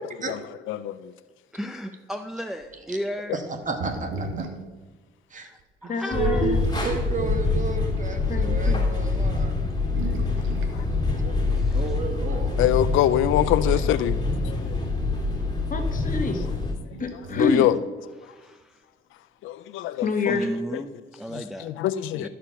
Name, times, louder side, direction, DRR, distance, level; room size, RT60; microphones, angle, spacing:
voice 1, 0.7-1.1 11.2-11.3 12.6-14.7 17.4-17.8 19.4-20.4 20.7-20.8 21.3-22.3, left 13 dB, 90° left, 0.4 m, -24 dB
voice 2, 1.5-3.4 5.3-6.6 10.8-11.0 11.6-12.0 18.2-18.8 20.3-21.7 22.1-22.3, equal, ahead, 0.5 m, -35 dB
sound 1, 2.6-2.7 3.6-4.8 5.6-5.7 6.4-7.0 7.8-8.0 8.9-9.0 9.6-10.8 12.5-12.6 13.4-14.1 14.5-14.6 16.9-17.9 19.9-20.5, right 3 dB, 85° right, 1.3 m, -37 dB
voice 3, 3.3-4.5 5.3-5.5 6.1-9.5 11.2-12.5 22.2-22.3, right 4 dB, 40° right, 1.4 m, -32 dB
voice 4, 5.9-6.6 8.3-8.8 15.7-16.4 17.0-17.7 20.0-20.5, left 4 dB, 40° left, 1.4 m, -27 dB
sound 2, 6.1-16.7, left 3 dB, 20° left, 2.5 m, -25 dB
12.5 x 5.1 x 5.7 m
cardioid pair, 90°, 20 cm